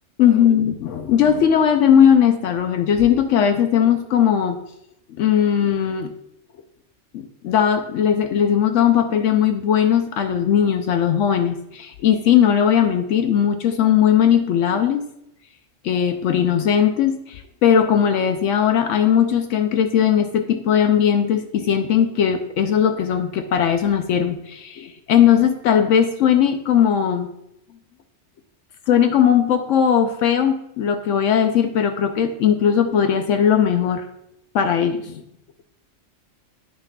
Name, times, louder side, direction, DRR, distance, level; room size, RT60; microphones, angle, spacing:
voice 1, 0.2-4.6 5.1-6.1 7.1-15.1 15.8-27.3 28.9-34.1 34.5-35.2, left 8 dB, 75° left, 6 dB, 0.9 m, -18 dB
9.7 x 6.0 x 2.2 m, 0.79 s
omnidirectional pair, 1.3 m